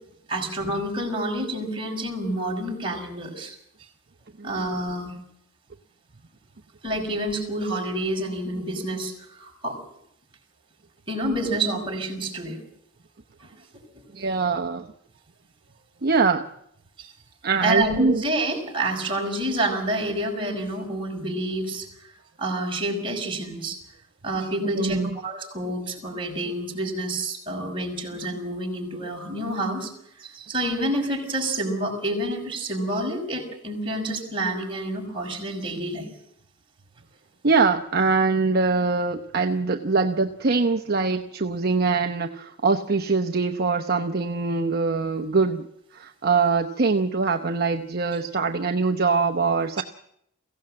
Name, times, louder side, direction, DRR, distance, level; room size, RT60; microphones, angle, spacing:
voice 1, 0.3-3.6 4.4-5.1 6.8-9.8 11.1-12.6 13.4-13.5 13.9-14.3 17.0-17.1 17.6-21.9 22.4-23.8 24.2-29.9 30.2-36.1 49.8-49.9, right 1 dB, 25° right, 0 dB, 5.6 m, -28 dB
voice 2, 14.1-14.9 16.0-16.5 17.4-18.2 24.8-25.1 37.4-45.6 45.9-49.8, right 4 dB, 50° right, 5 dB, 0.9 m, -23 dB
22.5 x 16.5 x 7.7 m, 0.74 s
head